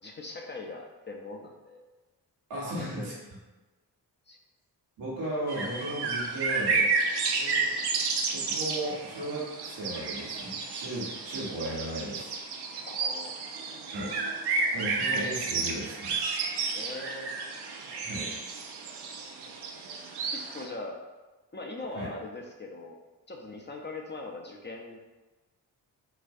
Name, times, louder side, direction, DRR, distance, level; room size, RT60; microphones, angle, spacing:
voice 1, 0.0-1.8 2.6-3.1 4.3-4.4 7.4-7.8 12.9-13.4 13.9-14.2 16.7-17.3 19.4-19.5 20.3-21.0 21.5-23.0 23.3-25.0, left 2 dB, 25° left, 1 dB, 0.6 m, -41 dB
voice 2, 2.5-3.1 5.0-6.9 8.3-12.3 13.9-14.1 14.7-16.1 18.0-18.3 21.9-22.1, right 1 dB, 90° right, -6 dB, 1.1 m, -35 dB
sound 1, 5.5-20.6, right 4 dB, 65° right, 0.6 m, -31 dB
4.1 x 2.3 x 2.6 m, 1.2 s
supercardioid pair, 45°, 43 cm